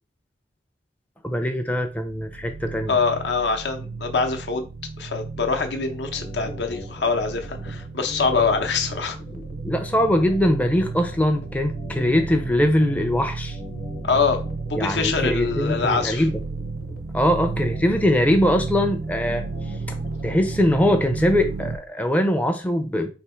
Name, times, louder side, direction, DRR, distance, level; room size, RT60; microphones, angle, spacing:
voice 1, 1.2-2.9 9.3-13.6 14.8-16.3 17.1-19.4 19.9-20.0 20.2-23.1, left 1 dB, 10° left, 0.4 m, -22 dB
sound 1, 1.9-21.8, right 3 dB, 55° right, 0.5 m, -33 dB
voice 2, 2.9-4.7 5.0-9.2 14.0-14.4 14.7-16.3, left 4 dB, 75° left, 0.7 m, -24 dB
sound 2, 5.9-20.6, left 1 dB, 50° left, 0.9 m, -41 dB
3.3 x 2.7 x 4.3 m
head